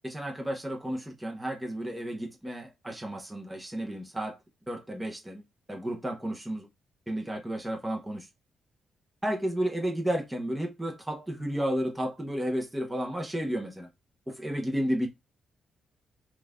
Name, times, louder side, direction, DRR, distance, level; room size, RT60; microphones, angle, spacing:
voice 1, 0.0-4.4 4.7-5.4 5.7-6.7 7.1-8.3 9.2-13.9 14.3-15.1, equal, 5° right, 0.8 m, -32 dB
5.5 x 2.5 x 3.5 m
wide cardioid pair, 175°, 0 cm